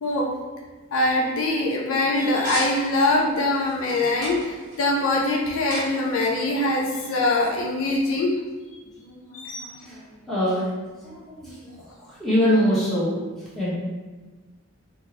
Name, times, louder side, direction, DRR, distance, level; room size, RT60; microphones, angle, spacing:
voice 1, 0.0-0.3 0.9-8.3 9.3-9.7, left 2 dB, 60° left, -1 dB, 0.4 m, -23 dB
sound 1, 2.1-7.6, right 1 dB, 55° right, 0.7 m, -39 dB
voice 2, 9.0-10.7 11.0-11.8 12.1-13.1 13.5-13.7, equal, ahead, -10 dB, 0.9 m, -25 dB
2.6 x 2.5 x 3.0 m, 1.3 s
head